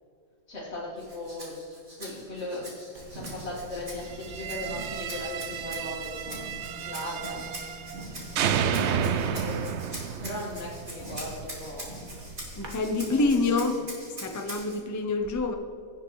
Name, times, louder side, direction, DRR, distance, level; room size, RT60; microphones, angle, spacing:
voice 1, 0.5-1.5 2.0-2.7 3.1-6.4 6.8-7.4 8.9-12.0 12.8-13.3, left 2 dB, 55° left, -7 dB, 2.1 m, -38 dB
Rattle (instrument), 1.0-14.8, right 1 dB, 35° right, 2.6 m, -44 dB
sound 1, 2.9-12.7, right 2 dB, 85° right, 1.8 m, -44 dB
sound 2, 4.2-8.0 8.4-11.4, right 8 dB, 65° right, 0.7 m, -31 dB
voice 2, 12.6-13.9 14.2-15.5, left 3 dB, 20° left, 4 dB, 0.4 m, -26 dB
16.5 x 7.3 x 3.1 m, 2.4 s
omnidirectional pair, 1.5 m